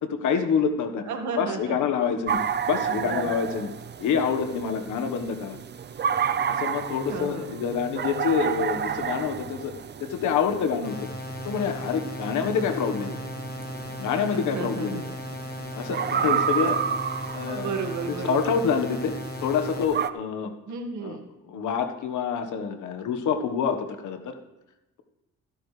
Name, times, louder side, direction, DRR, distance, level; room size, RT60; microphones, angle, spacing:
voice 1, 0.0-1.1 1.4-2.4 2.7-3.7 4.0-5.6 6.5-9.7 10.0-11.1 11.4-13.2 14.0-15.1 15.7-16.8 17.3-17.7 18.2-20.5 21.0-21.2 21.5-24.3, left 6 dB, 80° left, 6 dB, 1.4 m, -27 dB
voice 2, 1.1-1.8 2.8-3.3 7.1-7.6 14.3-15.1 17.5-18.6 20.7-21.3, right 5 dB, 70° right, 4 dB, 1.9 m, -33 dB
sound 1, 2.3-20.1, right 7 dB, 35° right, 0.6 m, -31 dB
sound 2, 10.8-19.8, left 2 dB, 30° left, 1.4 m, -37 dB
15.0 x 11.5 x 3.3 m, 0.96 s
cardioid pair, 90°, 30 cm